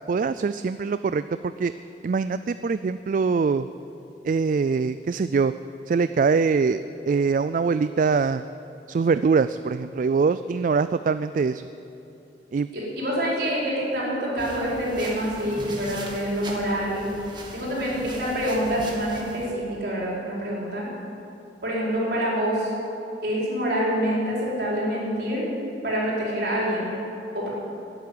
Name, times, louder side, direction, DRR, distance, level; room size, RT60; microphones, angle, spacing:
voice 1, 0.1-1.7 2.0-3.7 4.2-5.5 5.9-6.8 7.1-8.4 8.9-11.7 12.5-12.7, right 5 dB, 50° right, 12 dB, 0.3 m, -23 dB
voice 2, 12.7-20.9 21.6-22.7 23.2-25.5 25.8-27.0 27.3-27.5, equal, 65° right, -5 dB, 4.9 m, -26 dB
sound 1, 14.4-19.5, right 1 dB, 25° right, 1.8 m, -40 dB
13.0 x 10.5 x 9.7 m, 2.9 s
head